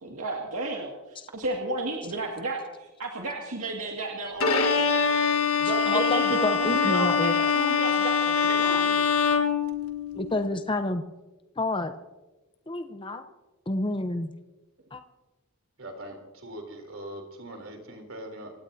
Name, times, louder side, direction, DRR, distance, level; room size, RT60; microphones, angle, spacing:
voice 1, 0.0-4.9 5.6-9.0, right 3 dB, 90° right, -1 dB, 2.1 m, -33 dB
Bowed string instrument, 4.4-10.3, left 6 dB, 80° left, 1.5 m, -24 dB
voice 2, 5.6-7.3 8.6-8.9 10.1-11.0 11.6-11.9 12.7-13.2 13.7-14.3 14.9-15.0, left 2 dB, 25° left, 8 dB, 0.7 m, -29 dB
voice 3, 15.8-18.5, right 1 dB, 70° right, 3 dB, 3.4 m, -41 dB
27.5 x 17.0 x 2.7 m, 1.1 s
head